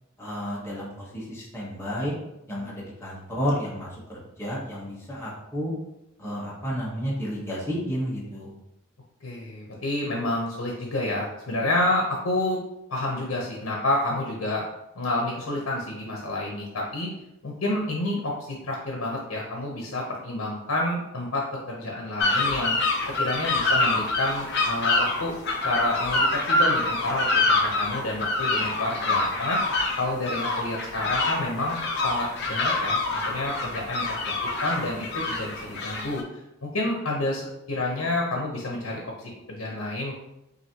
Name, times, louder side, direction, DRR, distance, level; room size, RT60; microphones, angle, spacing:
voice 1, 0.2-2.1 2.5-5.7 6.2-8.5 23.5-23.6, equal, 10° left, -5 dB, 1.1 m, -31 dB
voice 2, 9.2-12.6 12.9-14.6 15.0-17.1 17.4-22.8 23.0-25.3 25.6-29.6 30.0-34.3 34.6-36.2 36.6-39.1 39.5-40.1, left 1 dB, 85° left, -1 dB, 0.9 m, -29 dB
sound 1, 22.2-36.2, left 2 dB, 55° left, 0.8 m, -26 dB
5.8 x 2.8 x 2.9 m, 0.87 s
head